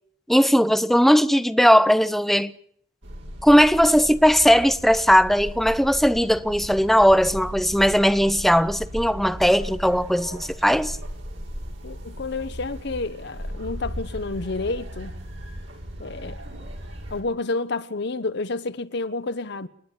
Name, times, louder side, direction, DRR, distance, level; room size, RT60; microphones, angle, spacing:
voice 1, 0.3-2.5 3.4-11.0, equal, ahead, 0.8 m, -18 dB
sound 1, 3.0-17.2, equal, 85° right, 5.7 m, -36 dB
voice 2, 11.8-15.2 16.0-16.4 17.1-19.7, left 3 dB, 65° left, 1.0 m, -30 dB
29.5 x 10.5 x 9.9 m
head